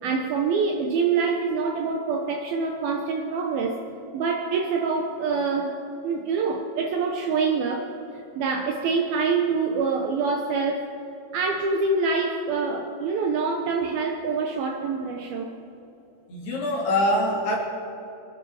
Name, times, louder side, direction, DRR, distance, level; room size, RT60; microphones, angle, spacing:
voice 1, 0.0-3.8 4.1-10.9 11.3-15.6, right 4 dB, 75° right, 3 dB, 2.3 m, -26 dB
voice 2, 16.3-17.6, left 1 dB, 60° left, -3 dB, 5.0 m, -24 dB
25.5 x 11.0 x 4.9 m, 3.0 s
omnidirectional pair, 5.2 m